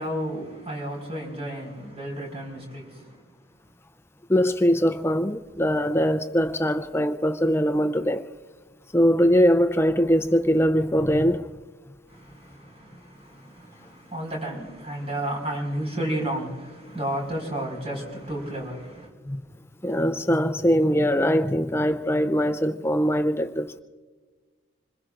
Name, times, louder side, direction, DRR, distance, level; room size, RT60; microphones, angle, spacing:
voice 1, 0.0-3.2 12.1-19.1, right 1 dB, 30° right, 4.8 m, -32 dB
voice 2, 4.3-8.3 8.9-11.5 19.3-19.4 19.8-23.8, equal, 10° left, 0.5 m, -22 dB
27.0 x 21.0 x 2.5 m
head